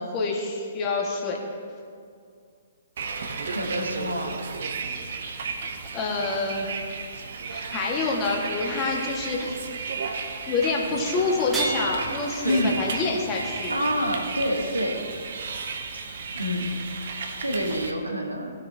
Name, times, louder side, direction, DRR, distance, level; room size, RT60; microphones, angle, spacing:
voice 1, 0.0-1.4 5.9-6.7 7.5-9.5 10.5-13.7, left 3 dB, 25° left, -2 dB, 1.6 m, -27 dB
Bus, 3.0-17.9, right 5 dB, 55° right, 0.8 m, -34 dB
voice 2, 3.4-4.3 12.4-12.8 13.7-15.0 16.3-16.7 17.4-18.5, equal, 90° right, 2 dB, 1.2 m, -27 dB
sound 1, 11.5-14.6 16.2-16.3 17.1-17.2, right 3 dB, 15° right, 1.2 m, -35 dB
17.5 x 6.5 x 2.8 m, 2.2 s
figure-of-eight pair, 120°, 0 cm